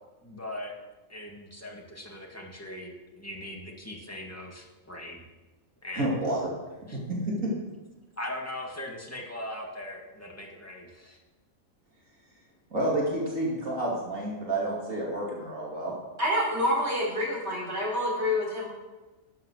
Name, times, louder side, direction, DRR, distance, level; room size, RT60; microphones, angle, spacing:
voice 1, 0.2-0.7 1.1-5.2 5.8-6.1 6.9-7.0 8.2-11.2, left 1 dB, 10° left, -1 dB, 2.0 m, -40 dB
voice 2, 5.9-6.5 7.1-7.5 12.7-15.9, right 1 dB, 70° right, -4 dB, 3.0 m, -29 dB
voice 3, 16.2-18.7, left 1 dB, 50° right, -3 dB, 4.3 m, -27 dB
12.0 x 8.5 x 6.4 m, 1.2 s
omnidirectional pair, 1.4 m